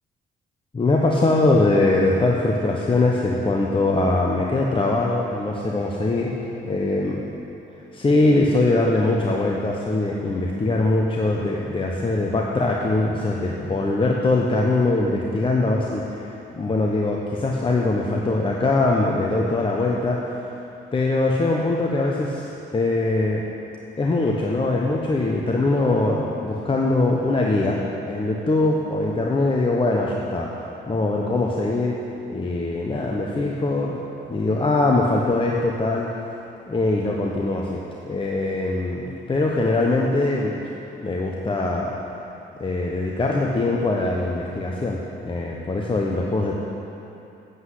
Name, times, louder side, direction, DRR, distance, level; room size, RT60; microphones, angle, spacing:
voice 1, 0.7-6.3 6.6-7.2 7.9-20.3 20.9-22.5 22.7-23.4 24.0-30.5 30.9-31.9 32.3-34.0 34.3-36.1 36.7-40.6 40.9-41.9 42.6-46.6, left 2 dB, 25° left, -2 dB, 1.0 m, -22 dB
8.1 x 8.0 x 8.0 m, 2.9 s
cardioid pair, 90°, 20 cm